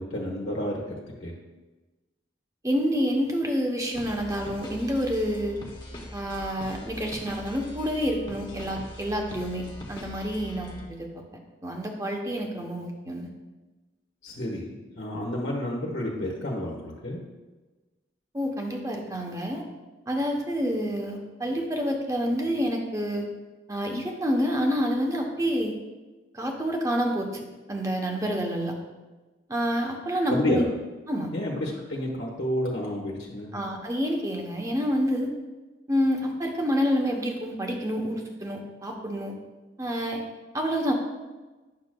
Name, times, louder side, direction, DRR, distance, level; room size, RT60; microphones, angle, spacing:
voice 1, 0.0-1.3 14.2-17.2 30.3-30.6 31.3-33.5, left 1 dB, 85° left, -3 dB, 1.2 m, -30 dB
voice 2, 2.6-5.6 6.1-11.1 11.6-13.3 18.3-19.6 20.1-23.3 23.7-25.7 26.3-28.8 29.5-30.6 31.1-31.3 33.5-35.3 35.9-39.4 39.8-40.2 40.5-40.9, equal, 20° right, 1 dB, 0.8 m, -28 dB
sound 1, 3.9-10.9, left 1 dB, 25° left, 0.9 m, -41 dB
9.4 x 6.3 x 2.2 m, 1.2 s
head